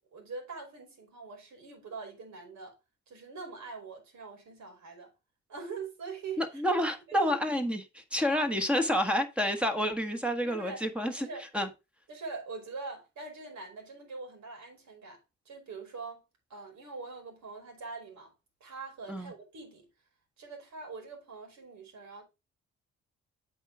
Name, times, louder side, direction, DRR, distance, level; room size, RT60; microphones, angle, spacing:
voice 1, 0.1-2.8 3.1-5.1 5.5-6.6 7.1-7.4 10.4-10.8 11.2-11.5 12.1-15.2 15.4-16.2 16.5-18.3 18.6-19.9 20.4-22.2, right 4 dB, 65° right, 4.3 m, -43 dB
voice 2, 6.4-11.3 11.5-11.7 19.1-19.3, equal, 5° right, 1.5 m, -29 dB
7.9 x 4.6 x 4.9 m
cardioid pair, 90°, 30 cm